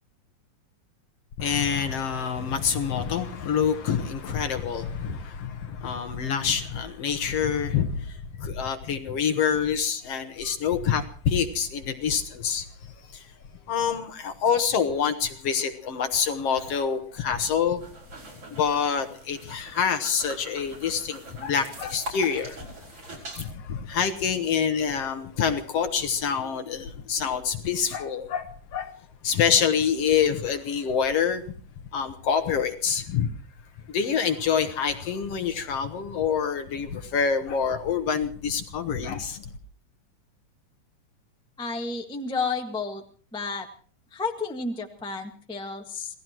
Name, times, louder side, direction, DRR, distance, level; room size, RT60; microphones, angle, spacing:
voice 1, 1.4-13.3 13.7-17.8 18.5-22.6 23.1-28.9 29.2-31.4 31.9-33.3 33.9-39.4, left 7 dB, 65° left, 9 dB, 1.8 m, -26 dB
sound 1, 17.7-23.5, right 1 dB, 50° right, 6.6 m, -42 dB
voice 2, 41.6-43.0 43.3-43.7 44.1-46.2, left 4 dB, 5° left, 3 dB, 0.7 m, -31 dB
27.5 x 17.5 x 3.0 m, 0.44 s
omnidirectional pair, 3.4 m